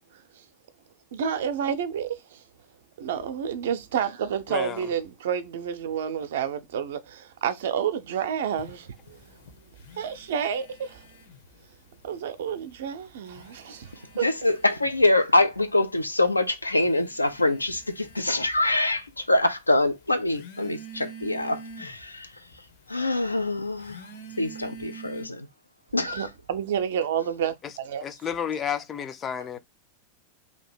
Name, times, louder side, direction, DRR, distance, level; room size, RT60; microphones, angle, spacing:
voice 1, 1.1-2.4 3.0-9.4 10.0-11.0 12.0-14.3 26.0-28.0, right 8 dB, 60° right, 0.6 m, -30 dB
voice 2, 4.5-4.9 27.6-27.7 28.0-29.6, left 8 dB, 25° left, 0.4 m, -31 dB
sound 1, 8.6-11.7 11.9-12.7 13.2-25.3, right 3 dB, 55° left, 0.9 m, -47 dB
voice 3, 14.2-22.3 22.9-24.0 24.4-25.5 25.9-26.3, left 2 dB, 85° left, 0.5 m, -24 dB
2.9 x 2.7 x 4.3 m
figure-of-eight pair, 90°, 0 cm